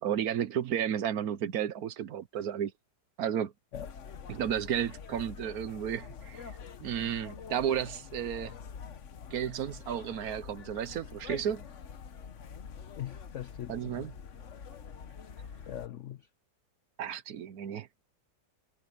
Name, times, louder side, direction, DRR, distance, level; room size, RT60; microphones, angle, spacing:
voice 1, 0.0-2.7 3.2-3.5 4.3-6.5 6.8-8.5 9.3-11.6 13.7-14.1 17.0-17.9, right 9 dB, 65° right, 1.2 m, -33 dB
sound 1, 3.7-15.9, left 6 dB, 50° left, 1.2 m, -46 dB
voice 2, 13.0-14.1 15.7-16.3, left 11 dB, 65° left, 0.7 m, -41 dB
omnidirectional pair, 1.9 m